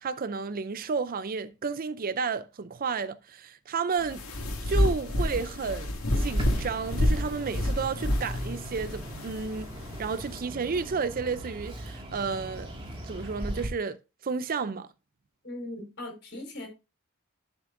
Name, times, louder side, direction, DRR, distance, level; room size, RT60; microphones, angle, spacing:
voice 1, 0.0-4.3 4.7-9.7 10.0-12.7 13.0-14.0 14.2-14.9, right 5 dB, 40° right, 0.5 m, -32 dB
sound 1, 4.0-10.4, left 1 dB, 80° left, 2.3 m, -29 dB
Bird, 6.2-13.7, equal, 25° right, 2.0 m, -38 dB
voice 2, 15.4-16.7, left 1 dB, 55° left, 4.5 m, -39 dB
11.5 x 6.2 x 2.6 m
head